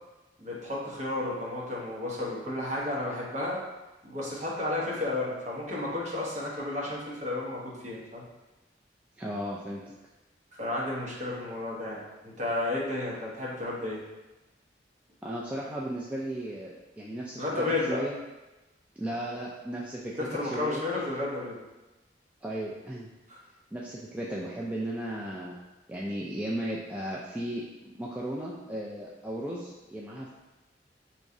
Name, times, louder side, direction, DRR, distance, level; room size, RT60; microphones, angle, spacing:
voice 1, 0.4-3.6 4.0-8.2 10.6-14.0 17.4-18.0 20.2-21.6 23.3-23.4, left 2 dB, 40° right, -6 dB, 1.1 m, -32 dB
voice 2, 9.2-9.8 15.2-18.1 19.0-20.1 20.4-20.8 22.4-23.1 23.7-25.6 25.9-27.6 27.9-30.3, right 1 dB, 10° right, -5 dB, 0.3 m, -35 dB
4.7 x 3.0 x 2.6 m, 1.1 s
head